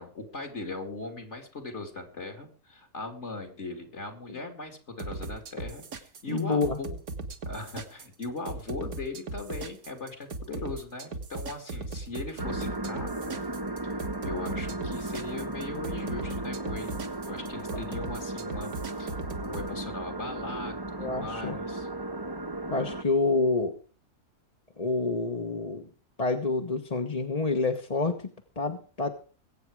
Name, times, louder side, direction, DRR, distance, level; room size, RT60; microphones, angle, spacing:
voice 1, 0.0-7.0 7.4-13.4 13.8-13.9 14.2-17.0 17.3-21.9, left 3 dB, 50° left, 4 dB, 2.8 m, -39 dB
sound 1, 5.0-19.7, right 3 dB, 80° right, 2.1 m, -38 dB
voice 2, 6.3-6.8 21.0-21.5 22.7-23.7 24.8-25.9 26.2-28.2 28.6-29.1, left 3 dB, 25° left, 4 dB, 1.3 m, -27 dB
sound 2, 12.4-23.0, right 2 dB, 15° right, 1.2 m, -35 dB
21.5 x 9.0 x 4.8 m, 0.40 s
omnidirectional pair, 1.5 m